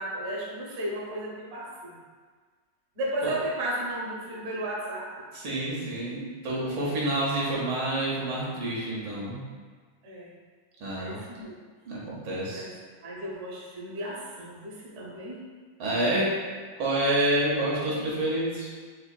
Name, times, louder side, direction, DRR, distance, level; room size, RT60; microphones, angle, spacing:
voice 1, 0.0-2.0 3.0-5.1 10.0-10.3 11.0-11.5 12.5-12.7 13.0-15.4, right 1 dB, 50° right, -6 dB, 0.8 m, -34 dB
voice 2, 5.3-9.4 10.8-11.2 11.9-12.6 15.8-16.3 16.8-18.7, right 1 dB, 80° right, -5 dB, 1.7 m, -28 dB
5.0 x 2.6 x 2.2 m, 1.5 s
omnidirectional pair, 2.1 m